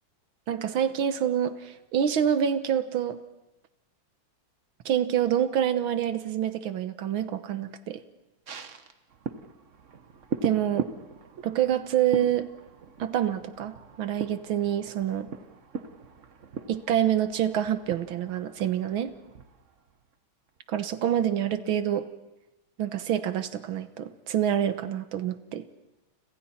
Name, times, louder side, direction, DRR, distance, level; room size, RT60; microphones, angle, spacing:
voice 1, 0.5-3.2 4.9-8.0 10.4-10.9 11.4-12.5 13.0-15.3 16.7-19.1 20.7-22.1 22.8-25.7, right 10 dB, 85° right, 11 dB, 1.9 m, -27 dB
sound 1, 8.5-20.1 20.5-20.6, right 5 dB, 45° right, 1.2 m, -39 dB
30.0 x 26.5 x 4.3 m, 0.98 s
omnidirectional pair, 2.2 m